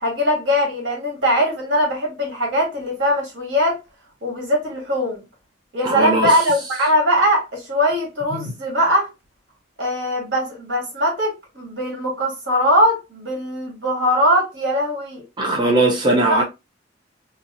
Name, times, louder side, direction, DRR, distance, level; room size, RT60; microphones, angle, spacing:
voice 1, 0.0-3.8 4.2-5.2 5.7-9.1 9.8-15.2 16.3-16.4, equal, 85° right, 1.8 m, -20 dB
voice 2, 5.8-6.4 8.3-8.5 15.4-16.4, right 2 dB, 25° right, 0.8 m, -19 dB
3.4 x 2.8 x 2.7 m
head